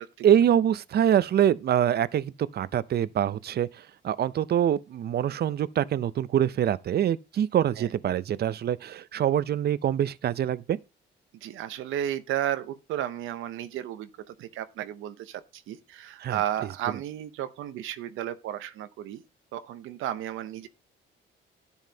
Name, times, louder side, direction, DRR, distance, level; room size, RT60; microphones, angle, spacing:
voice 1, 0.2-10.8 16.2-16.4, right 10 dB, 55° right, 0.6 m, -25 dB
voice 2, 11.4-19.2 19.5-20.7, right 11 dB, 85° right, 0.7 m, -33 dB
10.5 x 7.2 x 2.8 m
cardioid pair, 90°, 20 cm